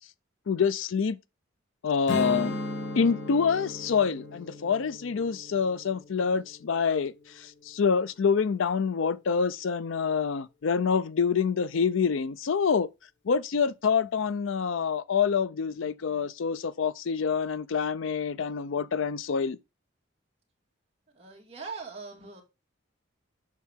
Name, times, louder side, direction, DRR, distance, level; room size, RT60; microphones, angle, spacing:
voice 1, 0.5-1.2 1.8-2.6 2.9-12.9 13.3-19.6, left 6 dB, 75° left, 0.5 m, -26 dB
Strum, 2.1-7.4, left 2 dB, 60° left, 1.3 m, -36 dB
voice 2, 21.1-22.4, right 4 dB, 30° right, 2.1 m, -41 dB
7.4 x 5.7 x 3.5 m
head